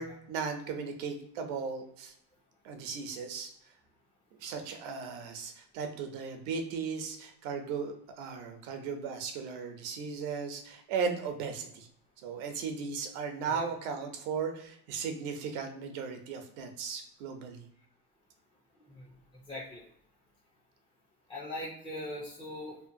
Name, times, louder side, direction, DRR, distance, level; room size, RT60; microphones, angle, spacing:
voice 1, 0.0-2.1 2.6-3.5 4.4-11.9 12.2-17.6, right 5 dB, 80° right, 6 dB, 0.7 m, -36 dB
voice 2, 19.5-19.8 21.3-22.8, left 1 dB, 15° left, -6 dB, 0.5 m, -40 dB
2.8 x 2.2 x 2.6 m, 0.69 s
supercardioid pair, 120°, 39 cm